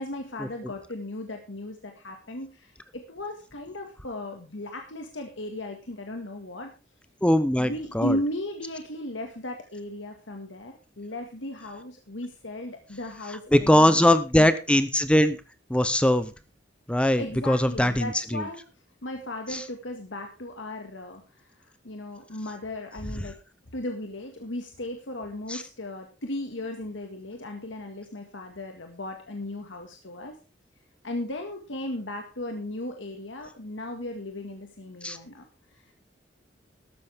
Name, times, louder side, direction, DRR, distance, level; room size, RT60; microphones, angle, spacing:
voice 1, 0.0-6.7 7.6-14.5 17.2-18.6 19.0-21.6 21.8-23.4 23.7-30.4 31.0-35.5 35.7-35.8, left 1 dB, 85° left, 4 dB, 1.9 m, -36 dB
voice 2, 7.2-8.2 13.5-15.4 15.7-16.3 16.9-18.4 19.5-19.6 25.5-25.6 35.0-35.2, left 1 dB, 5° left, 12 dB, 0.7 m, -21 dB
13.5 x 12.5 x 3.5 m, 0.30 s
head